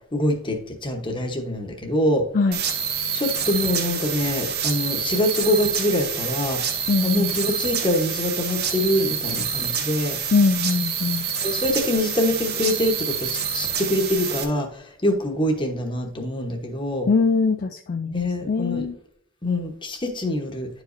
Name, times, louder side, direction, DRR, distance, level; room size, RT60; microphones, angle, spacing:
voice 1, 0.1-2.3 3.1-6.6 7.0-10.2 11.4-17.1 18.1-18.9 19.4-20.7, left 1 dB, 25° left, 3 dB, 1.1 m, -24 dB
sound 1, 2.5-14.4, right 7 dB, 55° right, 0.8 m, -27 dB
voice 2, 6.9-7.4 10.3-11.3 17.1-18.1 18.5-19.0, left 4 dB, 45° left, 7 dB, 0.4 m, -21 dB
10.5 x 5.0 x 2.6 m, 0.67 s
head